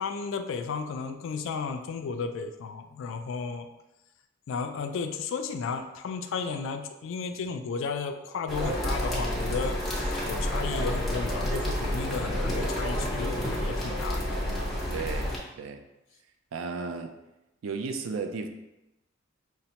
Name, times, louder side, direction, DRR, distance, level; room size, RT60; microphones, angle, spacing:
voice 1, 0.0-3.7 4.5-14.7, left 5 dB, 70° left, 7 dB, 0.3 m, -34 dB
sound 1, 8.5-15.4, equal, ahead, 0.8 m, -29 dB
voice 2, 14.9-15.8 16.5-17.1 17.6-18.5, right 4 dB, 75° right, 6 dB, 0.4 m, -34 dB
5.1 x 2.1 x 2.8 m, 0.97 s
head